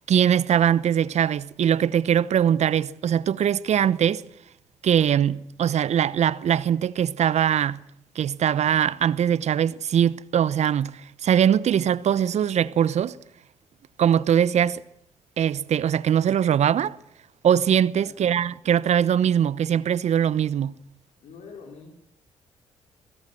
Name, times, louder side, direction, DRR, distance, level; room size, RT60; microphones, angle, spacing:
voice 1, 0.1-4.2 4.8-7.8 8.2-10.9 11.2-13.2 14.0-14.8 15.4-17.0 17.4-20.7, right 9 dB, 60° right, 0.9 m, -21 dB
voice 2, 17.9-18.3 21.2-21.9, left 5 dB, 70° left, 4.6 m, -45 dB
25.5 x 18.5 x 7.7 m
hypercardioid pair, 50°, 13 cm